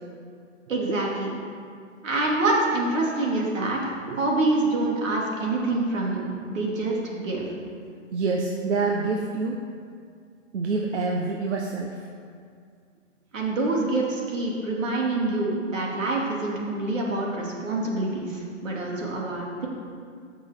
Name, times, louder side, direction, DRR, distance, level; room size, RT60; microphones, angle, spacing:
voice 1, 0.7-1.3 2.0-6.2 6.5-7.5 13.3-19.7, right 2 dB, 80° right, -2 dB, 2.5 m, -26 dB
voice 2, 8.1-9.6 10.5-12.0, right 3 dB, 65° right, 0 dB, 1.0 m, -26 dB
13.0 x 6.3 x 3.6 m, 2.2 s
hypercardioid pair, 165°, 38 cm